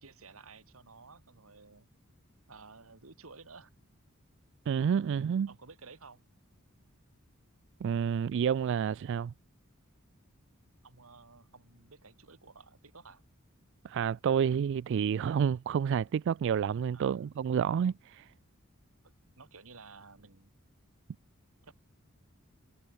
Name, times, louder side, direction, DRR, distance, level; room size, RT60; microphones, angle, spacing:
voice 1, 0.0-1.9 2.5-3.7 5.5-6.2 10.8-13.2 16.9-17.3 19.0-20.5 21.6-21.7, right 4 dB, 90° right, 2.2 m, -54 dB
voice 2, 4.7-5.5 7.8-9.3 13.8-18.3, right 7 dB, 60° right, 0.3 m, -29 dB
head